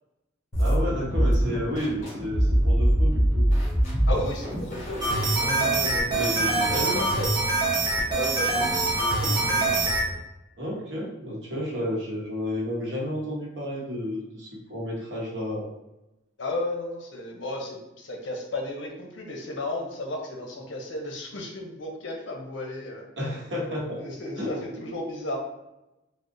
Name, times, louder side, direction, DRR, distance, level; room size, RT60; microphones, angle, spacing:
sound 1, 0.5-10.2, equal, 40° left, 1.1 m, -26 dB
voice 1, 0.6-3.5 5.4-7.1 8.6-8.7 10.6-15.7 23.2-24.0 24.4-24.5, left 1 dB, 70° right, -4 dB, 0.9 m, -31 dB
voice 2, 4.1-5.5 6.6-7.5 8.1-10.0 16.4-23.1 24.0-25.4, left 1 dB, 80° left, 1 dB, 0.6 m, -34 dB
sound 2, 5.0-10.0, right 2 dB, 20° right, 0.6 m, -24 dB
3.4 x 2.1 x 2.6 m, 0.93 s
head